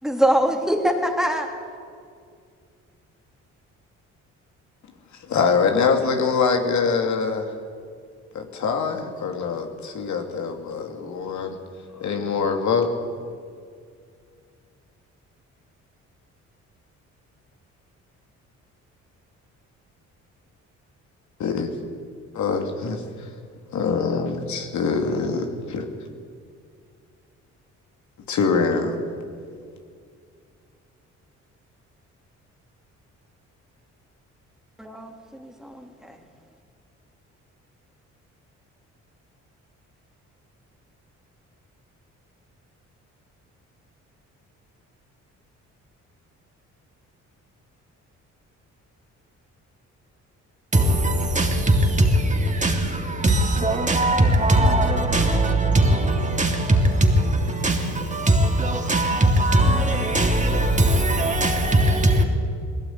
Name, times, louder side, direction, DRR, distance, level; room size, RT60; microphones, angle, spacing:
voice 1, 0.0-1.5 34.8-36.2, equal, ahead, 3.3 m, -23 dB
voice 2, 5.3-7.5 8.3-11.6 11.9-12.9 21.4-21.7 22.3-23.0 23.7-25.9 28.3-29.0, left 5 dB, 70° left, 2.7 m, -24 dB
voice 3, 50.7-62.2, right 1 dB, 25° right, 3.2 m, -20 dB
20.5 x 17.5 x 9.4 m
cardioid pair, 90°, 30 cm